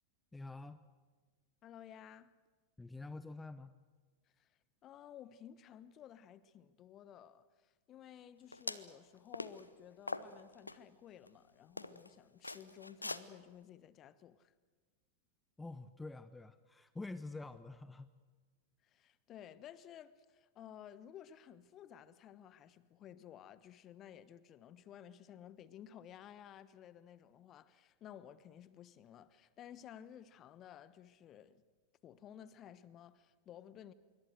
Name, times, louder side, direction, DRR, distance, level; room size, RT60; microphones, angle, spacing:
voice 1, 0.3-0.8 2.8-3.7 15.6-18.1, left 3 dB, 10° left, 0.8 m, -47 dB
voice 2, 1.6-2.3 4.4-4.5 4.8-14.5 18.8-31.6 32.0-33.9, left 10 dB, 30° left, 1.1 m, -55 dB
sound 1, 8.5-8.9 9.3-9.6 10.1-10.8 11.3-11.4 11.8-12.1 12.4-13.2, left 2 dB, 85° left, 0.9 m, -42 dB
26.0 x 23.5 x 7.9 m
figure-of-eight pair, 90°, 0 cm